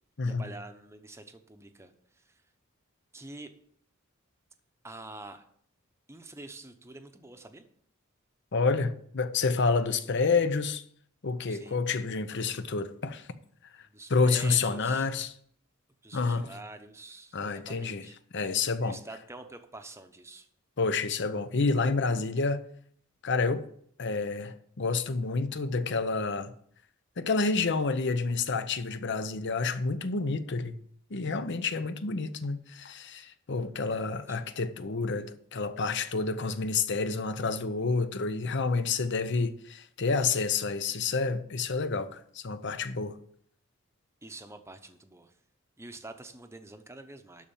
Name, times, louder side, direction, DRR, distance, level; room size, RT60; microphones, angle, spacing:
voice 1, 0.3-2.4 3.1-3.5 4.8-5.4 6.1-7.6 11.5-11.8 13.8-15.1 16.0-18.2 18.8-20.5 33.9-34.4 44.2-45.3 45.8-47.4, right 2 dB, 15° right, 0.8 m, -47 dB
voice 2, 8.5-10.8 11.2-13.3 14.1-15.3 16.1-16.5 17.3-18.0 18.3-19.0 20.8-22.6 23.2-23.7 24.0-26.5 27.2-30.8 31.1-43.2, left 4 dB, 55° left, 0.7 m, -29 dB
12.0 x 4.3 x 7.2 m
head